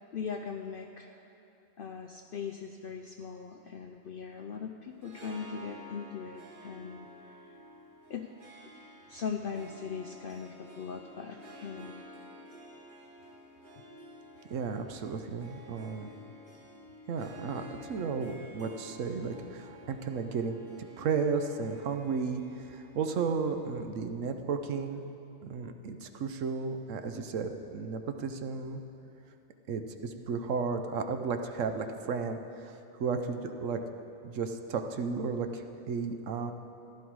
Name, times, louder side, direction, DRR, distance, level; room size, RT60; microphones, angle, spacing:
voice 1, 0.1-1.3 1.8-7.1 8.1-8.3 9.1-11.9 13.7-13.8, left 6 dB, 60° left, 4 dB, 0.6 m, -40 dB
Harp, 4.9-24.3, equal, 40° right, 1.7 m, -51 dB
voice 2, 14.5-16.1 17.1-20.6 21.0-25.0 25.4-28.8 29.7-33.8 34.2-36.5, right 5 dB, 70° right, 7 dB, 1.1 m, -34 dB
15.0 x 11.5 x 4.7 m, 2.8 s
omnidirectional pair, 1.4 m